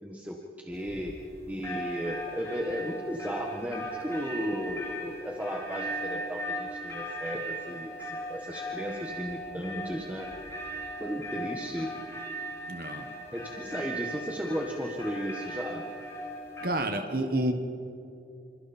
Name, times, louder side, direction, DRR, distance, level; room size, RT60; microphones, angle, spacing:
voice 1, 0.0-1.1 1.5-10.3 11.0-11.9 13.3-15.8, equal, 10° right, 0 dB, 1.4 m, -35 dB
sound 1, 0.7-1.3 1.6-16.7, right 1 dB, 15° left, 4.2 m, -38 dB
voice 2, 12.7-13.1 16.6-17.5, right 1 dB, 55° right, 6 dB, 1.6 m, -29 dB
27.5 x 27.0 x 4.4 m, 2.8 s
head